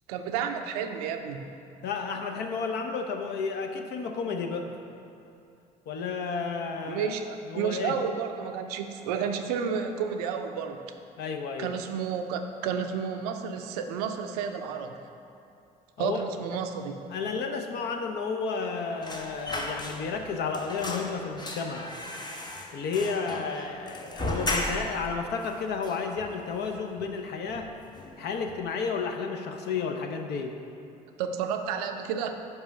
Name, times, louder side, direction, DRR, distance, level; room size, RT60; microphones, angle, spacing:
voice 1, 0.1-1.5 6.9-10.8 11.6-15.0 16.0-17.1 31.2-32.3, right 7 dB, 75° right, 6 dB, 0.5 m, -31 dB
voice 2, 1.8-4.7 5.9-7.1 7.5-8.0 11.2-11.7 16.0-16.2 17.1-21.9 22.7-27.8 28.2-30.6, left 5 dB, 55° left, 4 dB, 0.7 m, -32 dB
sound 1, 19.0-20.3 20.5-25.1 25.4-25.5 25.8-26.6 27.0-27.2 27.5-28.2 28.5-28.7, left 1 dB, 20° left, 0.9 m, -35 dB
5.5 x 4.8 x 5.7 m, 2.7 s
hypercardioid pair, 55°, 20 cm